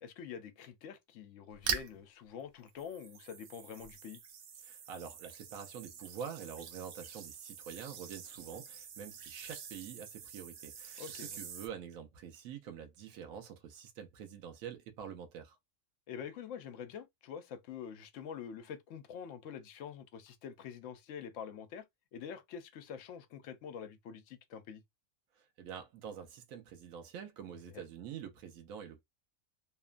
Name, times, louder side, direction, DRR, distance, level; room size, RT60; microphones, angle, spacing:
voice 1, 0.0-4.2 11.0-11.4 16.1-21.9 22.1-24.8 27.7-27.8, left 7 dB, 70° left, 0.9 m, -46 dB
sound 1, 1.5-2.0 2.7-11.7, right 7 dB, 65° right, 0.5 m, -44 dB
voice 2, 4.6-11.0 11.4-15.6 25.4-29.0, right 8 dB, 80° right, 1.1 m, -46 dB
3.0 x 2.1 x 2.4 m
omnidirectional pair, 1.4 m